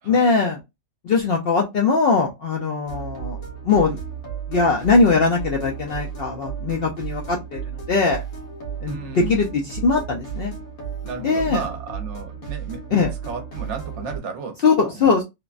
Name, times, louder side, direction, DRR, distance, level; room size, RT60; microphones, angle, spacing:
voice 1, 0.1-0.6 1.0-3.4 3.6-4.0 4.5-8.2 8.8-10.5 11.2-11.6 12.9-13.1 14.6-15.2, left 4 dB, 65° left, 0.6 m, -20 dB
sound 1, 2.9-14.2, right 7 dB, 80° left, 1.5 m, -33 dB
voice 2, 8.9-9.4 11.0-15.1, right 5 dB, 65° right, 0.9 m, -34 dB
3.2 x 2.1 x 2.4 m
omnidirectional pair, 1.4 m